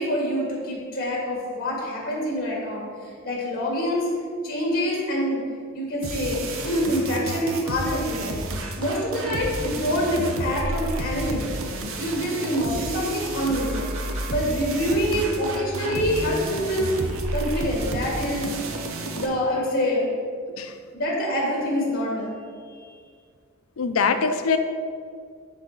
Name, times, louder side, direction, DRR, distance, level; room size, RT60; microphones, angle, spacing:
voice 1, 0.0-4.1 4.4-5.4 5.7-6.4 6.7-8.4 8.8-11.5 12.0-13.9 14.3-17.0 17.3-18.5 19.2-20.1 20.9-22.4 22.7-22.9, equal, 50° left, -2 dB, 1.8 m, -26 dB
sound 1, 6.0-19.3, right 2 dB, 70° right, 0.8 m, -31 dB
voice 2, 23.8-24.6, left 5 dB, 90° left, 8 dB, 0.5 m, -23 dB
10.0 x 4.1 x 3.9 m, 2.1 s
head